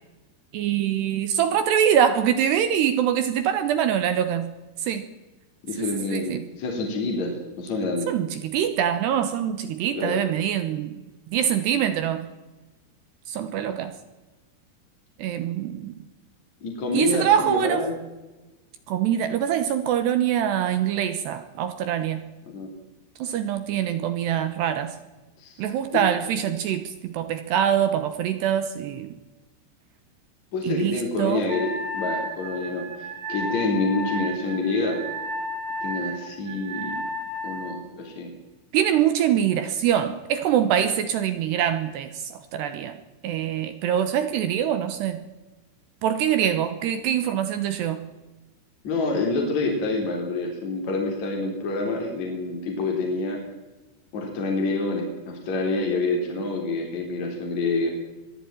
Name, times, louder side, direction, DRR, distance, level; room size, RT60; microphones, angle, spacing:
voice 1, 0.5-4.5 4.8-5.1 5.8-6.4 8.1-11.0 11.3-12.3 13.3-13.9 15.2-16.0 16.9-17.9 18.9-22.3 23.2-25.0 25.6-29.1 30.6-31.4 38.7-43.0 43.2-45.2 46.0-48.1, right 9 dB, 75° right, 10 dB, 2.8 m, -24 dB
voice 2, 5.6-8.1 10.0-10.2 16.6-17.9 22.5-22.7 25.4-25.6 25.9-26.0 30.5-35.0 35.8-37.0 37.4-38.3 40.7-40.8 48.8-53.4 54.1-57.9, left 3 dB, 40° left, 1 dB, 4.3 m, -27 dB
Wind instrument woodwind instrument, 31.5-37.8, equal, 45° right, 3.6 m, -33 dB
23.0 x 14.0 x 8.9 m, 1.1 s
omnidirectional pair, 5.8 m